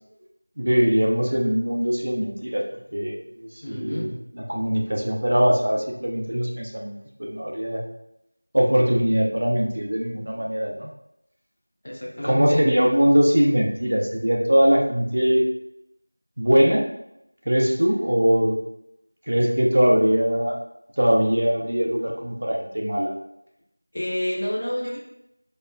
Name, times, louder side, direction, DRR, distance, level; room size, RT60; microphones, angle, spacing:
voice 1, 0.6-2.6 2.9-7.8 8.5-10.9 12.2-15.4 16.4-16.9 17.5-18.6 19.3-20.6 21.0-23.1, equal, 40° right, 0 dB, 0.5 m, -21 dB
voice 2, 3.6-4.1 11.8-12.7 23.9-25.0, left 1 dB, 30° left, -2 dB, 0.6 m, -29 dB
4.2 x 3.2 x 2.2 m, 0.82 s
figure-of-eight pair, 175°, 0 cm